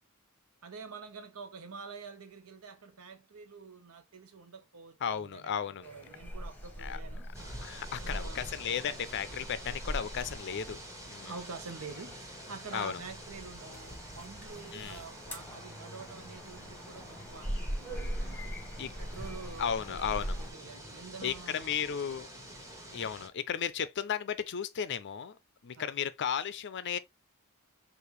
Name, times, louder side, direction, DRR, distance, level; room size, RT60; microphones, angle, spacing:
voice 1, 0.6-5.5 5.8-7.3 8.0-8.5 11.2-18.6 19.0-21.9 25.8-25.9, right 4 dB, 75° right, 0.9 m, -47 dB
voice 2, 5.0-5.9 6.8-7.0 7.6-10.8 11.1-11.3 12.7-13.0 14.7-15.0 18.8-18.9 19.6-20.4 21.2-22.3 22.9-27.0, left 8 dB, 55° left, 0.5 m, -34 dB
sound 1, 5.8-20.5, equal, 10° left, 0.9 m, -42 dB
sound 2, 7.3-23.3, right 1 dB, 15° right, 1.2 m, -47 dB
4.8 x 2.5 x 3.1 m
head